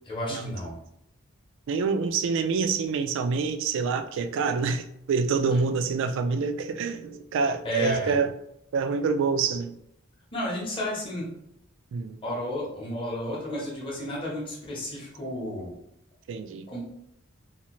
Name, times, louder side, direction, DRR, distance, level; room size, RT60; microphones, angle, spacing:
voice 1, 0.0-0.7 7.6-8.2 10.3-11.3 12.2-15.7 16.7-16.8, equal, 25° left, 0.8 m, -31 dB
voice 2, 1.7-8.3 8.7-9.7 11.9-12.2 16.3-16.6, right 5 dB, 60° right, 0.3 m, -26 dB
2.7 x 2.4 x 2.9 m
head